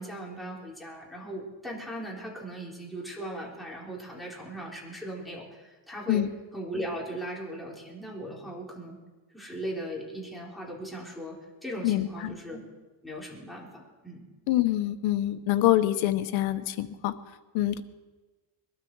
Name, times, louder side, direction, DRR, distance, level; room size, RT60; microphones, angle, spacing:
voice 1, 0.0-6.2 6.5-9.0 9.3-12.6 13.0-14.2, right 1 dB, ahead, -4 dB, 3.9 m, -38 dB
voice 2, 11.8-12.4 14.5-17.1 17.5-17.8, left 14 dB, 85° left, 10 dB, 1.1 m, -25 dB
22.0 x 12.5 x 4.7 m, 1.2 s
cardioid pair, 140°, 46 cm